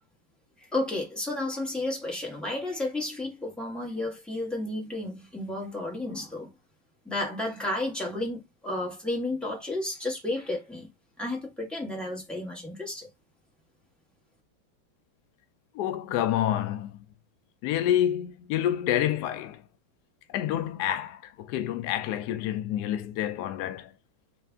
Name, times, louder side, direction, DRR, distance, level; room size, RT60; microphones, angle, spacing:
voice 1, 0.7-6.5 7.0-10.9 11.2-13.1, left 2 dB, ahead, 1.3 m, -32 dB
voice 2, 15.7-16.9 17.6-19.6 20.3-23.9, left 11 dB, 75° left, 0.9 m, -28 dB
3.4 x 3.2 x 3.5 m
omnidirectional pair, 2.2 m